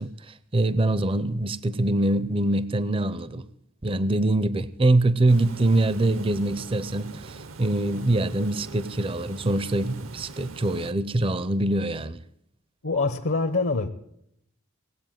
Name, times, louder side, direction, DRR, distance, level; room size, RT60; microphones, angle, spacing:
voice 1, 0.0-3.4 3.8-12.2, right 2 dB, 25° right, 0.5 m, -24 dB
Water, 5.3-10.9, right 3 dB, 65° right, 0.7 m, -42 dB
voice 2, 12.8-13.9, left 3 dB, 60° left, 0.8 m, -24 dB
18.5 x 8.2 x 9.0 m
head